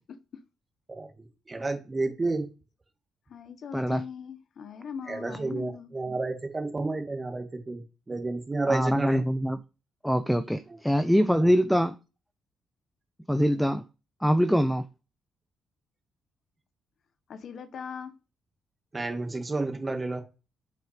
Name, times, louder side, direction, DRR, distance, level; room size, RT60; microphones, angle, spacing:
voice 1, 1.5-2.5 5.1-9.2 10.7-10.8 11.4-11.5 18.9-20.2, right 3 dB, 25° right, 1.8 m, -31 dB
voice 2, 3.3-5.9 17.3-18.1, left 7 dB, 60° left, 1.0 m, -40 dB
voice 3, 8.7-9.6 10.0-11.9 13.3-13.8 14.2-14.8, equal, ahead, 0.6 m, -23 dB
7.3 x 5.8 x 5.0 m
cardioid pair, 90°, 0 cm